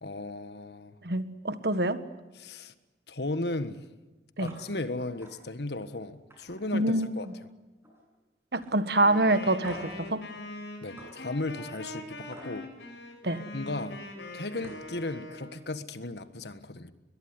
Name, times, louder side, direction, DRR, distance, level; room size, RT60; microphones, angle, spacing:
voice 1, 0.0-1.0 2.3-2.7 3.1-3.8 4.4-7.3 10.8-12.7 13.5-14.0 14.3-16.9, left 2 dB, 70° left, 12 dB, 1.6 m, -35 dB
voice 2, 1.0-2.0 4.4-4.5 6.7-7.1 8.5-10.2 13.2-13.4, right 2 dB, 65° right, 12 dB, 1.6 m, -26 dB
sound 1, 4.4-4.6 5.0-5.3 5.7-5.9 6.3-7.5 7.8-8.2 8.6-8.7 9.6-10.0 11.0-11.1 12.3-12.5 14.2-14.3 14.6-14.9, right 1 dB, 15° right, 7.8 m, -47 dB
Wind instrument woodwind instrument, 8.9-15.6, left 2 dB, 85° left, 7.4 m, -42 dB
22.0 x 21.0 x 9.7 m, 1.1 s
head